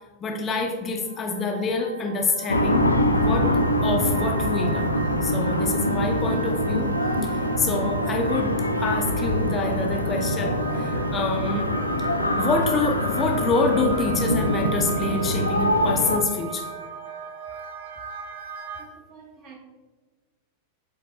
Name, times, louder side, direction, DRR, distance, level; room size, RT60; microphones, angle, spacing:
voice 1, 0.2-2.8 3.2-3.5 3.8-4.9 5.2-6.9 7.2-7.3 7.6-8.5 8.8-11.7 12.4-16.7, left 3 dB, 25° left, 2 dB, 0.5 m, -26 dB
sound 1, 0.7-18.8, right 4 dB, 55° right, 0.6 m, -37 dB
sound 2, 2.5-16.2, equal, 80° left, 0.4 m, -24 dB
voice 2, 18.8-19.6, right 6 dB, 35° right, 1 dB, 1.0 m, -48 dB
5.0 x 3.7 x 2.8 m, 1.3 s
figure-of-eight pair, 90°, 0 cm